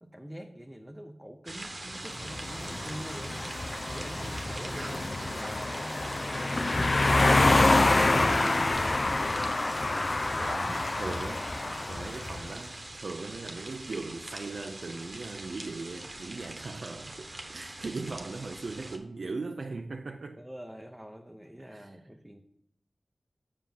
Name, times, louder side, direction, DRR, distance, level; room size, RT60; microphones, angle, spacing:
voice 1, 0.0-3.4 3.9-9.1 10.3-10.7 20.4-22.4, equal, 10° right, 0.7 m, -45 dB
sound 1, 1.5-19.0, right 2 dB, 50° right, 1.1 m, -43 dB
sound 2, 2.2-12.5, left 2 dB, 50° left, 0.5 m, -27 dB
voice 2, 8.1-8.6 10.4-20.4 21.6-22.0, right 3 dB, 80° right, 0.5 m, -39 dB
7.4 x 5.7 x 5.7 m
wide cardioid pair, 65°, 0 cm